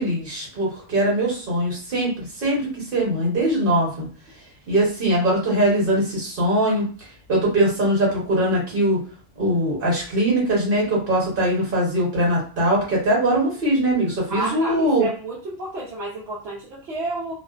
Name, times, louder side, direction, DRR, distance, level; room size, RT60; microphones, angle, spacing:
voice 1, 0.0-4.1 4.7-6.9 7.3-9.0 9.4-15.1, right 1 dB, 60° right, -2 dB, 1.1 m, -21 dB
voice 2, 14.3-17.3, right 2 dB, 90° right, -5 dB, 0.9 m, -30 dB
2.4 x 2.1 x 2.3 m, 0.40 s
omnidirectional pair, 1.0 m